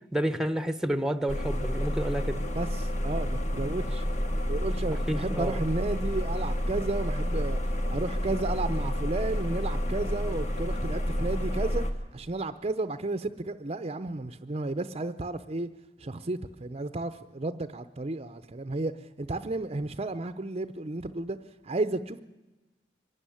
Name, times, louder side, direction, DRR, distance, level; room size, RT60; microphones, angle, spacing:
voice 1, 0.1-2.4 5.1-5.7, right 1 dB, 5° right, 12 dB, 0.9 m, -29 dB
sound 1, 1.3-11.9, equal, 45° left, 1.8 m, -30 dB
voice 2, 2.5-4.1 4.5-7.6 7.9-11.8 12.1-15.7 16.0-18.9 19.2-21.4 21.6-22.2, right 2 dB, 35° right, 11 dB, 0.7 m, -32 dB
24.0 x 12.0 x 10.0 m, 1.1 s
head